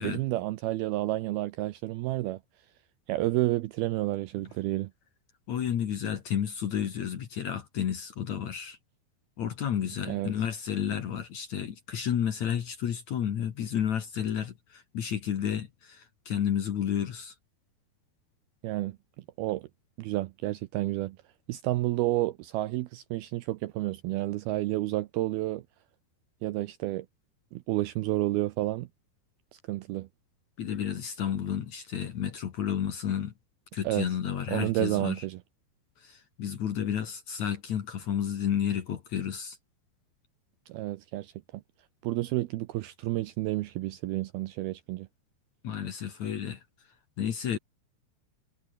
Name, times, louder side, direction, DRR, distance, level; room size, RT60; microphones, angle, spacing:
voice 1, 0.0-2.4 3.1-4.9 10.1-10.3 18.6-19.0 19.4-19.7 20.0-21.2 21.5-25.6 26.4-27.1 27.5-28.9 29.7-30.1 33.8-34.1 34.5-35.4 40.7-41.6 42.0-45.1, right 17 dB, 90° right, 2.2 m, -30 dB
voice 2, 5.5-8.8 9.4-17.3 30.6-33.3 33.7-35.2 36.0-39.6 45.6-46.6 47.2-47.6, left 9 dB, 55° left, 2.2 m, -31 dB
omnidirectional pair, 5.2 m